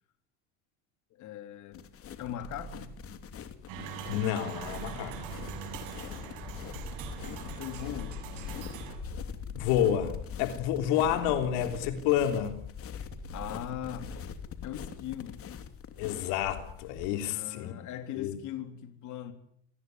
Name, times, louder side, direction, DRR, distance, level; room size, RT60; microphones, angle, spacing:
voice 1, 1.1-1.8 2.2-2.9 6.2-6.5 7.6-8.2 13.3-14.1 14.6-15.4 17.2-19.3, left 11 dB, 55° left, 3.5 m, -40 dB
sound 1, 1.7-17.1, left 8 dB, 40° left, 2.8 m, -43 dB
sound 2, 2.4-3.7 4.5-6.2 6.7-8.1 8.8-10.4 11.0-12.4 13.1-14.7, right 7 dB, 20° right, 6.0 m, -48 dB
sound 3, 3.7-9.0, right 8 dB, 70° right, 7.0 m, -42 dB
voice 2, 4.1-5.2 9.5-12.5 16.0-17.7 18.2-18.4, left 10 dB, 85° left, 3.5 m, -29 dB
28.0 x 19.5 x 9.4 m
cardioid pair, 135°, 34 cm